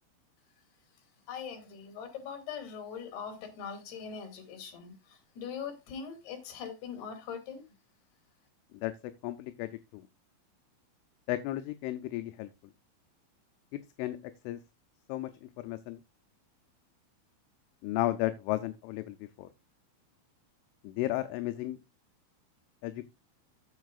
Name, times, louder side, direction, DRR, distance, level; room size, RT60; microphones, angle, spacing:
voice 1, 1.3-7.6, left 7 dB, 60° left, 4.1 m, -41 dB
voice 2, 9.2-10.0 11.3-12.5 13.7-14.2 14.4-14.6 15.1-16.0 17.8-19.5 20.8-21.8 22.8-23.1, left 15 dB, 80° left, 3.1 m, -34 dB
14.0 x 8.2 x 2.4 m
omnidirectional pair, 5.8 m